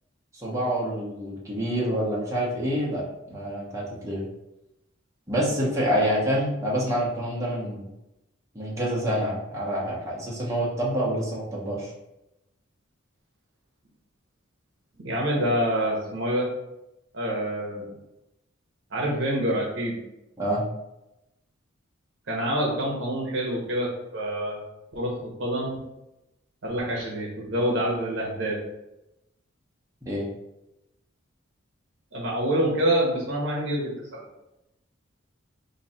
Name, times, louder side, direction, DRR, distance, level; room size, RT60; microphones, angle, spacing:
voice 1, 0.3-4.2 5.3-7.9 8.5-11.9 20.4-20.6 30.1-30.3, equal, 15° right, -6 dB, 1.0 m, -27 dB
voice 2, 15.0-16.5 17.1-17.9 18.9-20.0 22.3-24.6 24.9-25.8 26.6-28.6 32.1-34.2, right 1 dB, 65° right, -4 dB, 0.9 m, -27 dB
3.0 x 2.7 x 4.2 m, 0.91 s
head